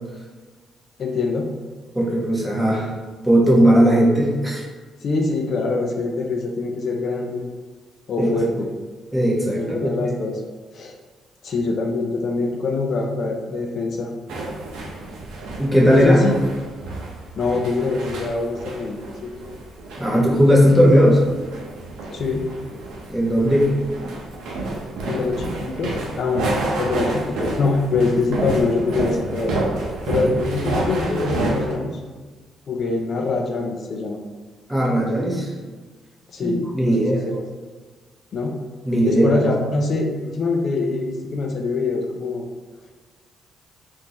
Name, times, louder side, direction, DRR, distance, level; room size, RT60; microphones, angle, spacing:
voice 1, 1.0-1.5 5.0-7.4 8.1-8.7 9.6-10.4 10.7-10.9 11.4-14.1 15.9-16.4 17.4-19.3 22.1-22.5 25.0-29.6 30.1-32.0 32.7-34.2 36.3-37.3 38.3-38.5 39.0-42.4, left 3 dB, 55° left, 1 dB, 0.4 m, -24 dB
voice 2, 1.9-2.9 3.2-4.6 8.2-8.3 9.1-10.0 15.6-16.2 20.0-21.2 23.1-23.7 34.7-35.5 36.4-37.2 38.9-39.4, equal, 5° right, -5 dB, 1.0 m, -17 dB
sound 1, 14.3-31.7, right 2 dB, 85° right, 0.6 m, -29 dB
3.6 x 2.5 x 2.8 m, 1.4 s
cardioid pair, 90°, 0 cm